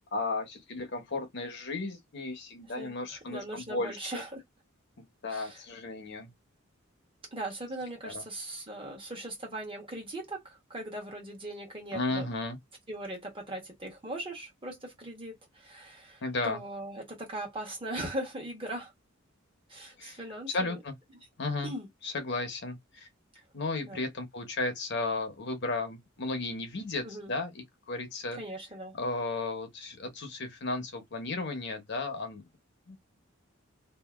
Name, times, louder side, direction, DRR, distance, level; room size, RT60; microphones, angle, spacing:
voice 1, 0.1-4.2 5.0-6.3 8.0-8.2 11.9-12.6 16.2-16.6 20.0-20.2 20.5-20.9 21.4-21.7 22.0-23.1 23.5-28.4 28.9-32.4 32.9-33.0, left 3 dB, 55° left, 0.9 m, -34 dB
voice 2, 2.8-4.4 5.3-5.6 7.3-12.3 12.9-18.9 19.7-20.8 21.1-21.2 21.6-21.9 23.8-24.0 27.0-27.3 28.3-28.9, right 1 dB, 25° right, 1.2 m, -39 dB
2.8 x 2.6 x 2.4 m
head